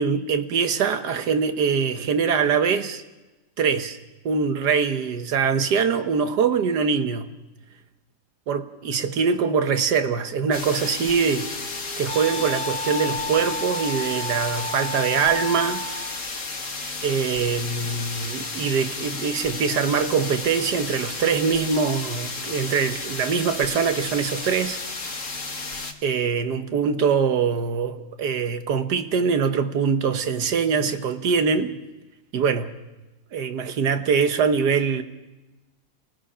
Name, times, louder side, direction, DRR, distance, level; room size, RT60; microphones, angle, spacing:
voice 1, 0.0-3.0 3.6-4.0 4.2-7.3 8.5-11.5 12.0-15.8 17.0-24.8 26.0-31.8 32.3-32.7 33.3-35.0, right 6 dB, 85° right, 1.8 m, -23 dB
sound 1, 10.5-25.9, left 3 dB, 50° left, 2.1 m, -33 dB
Wind instrument woodwind instrument, 10.9-16.2, left 2 dB, 75° left, 1.9 m, -32 dB
29.5 x 17.5 x 5.7 m
omnidirectional pair, 1.7 m